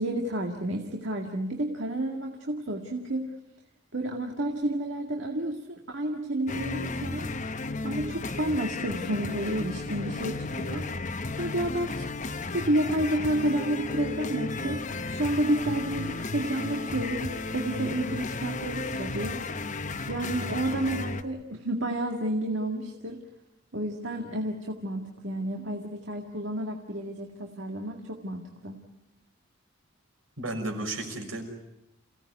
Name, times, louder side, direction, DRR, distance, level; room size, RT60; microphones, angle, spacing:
voice 1, 0.0-3.3 3.9-7.3 7.8-10.9 11.3-14.8 15.1-19.4 20.1-23.2 23.7-28.8, right 1 dB, 65° right, 2 dB, 2.1 m, -30 dB
sound 1, 6.5-21.2, left 3 dB, 35° left, 1.0 m, -34 dB
voice 2, 30.4-31.4, right 2 dB, 80° right, 3 dB, 5.8 m, -33 dB
29.0 x 17.0 x 9.6 m, 0.89 s
head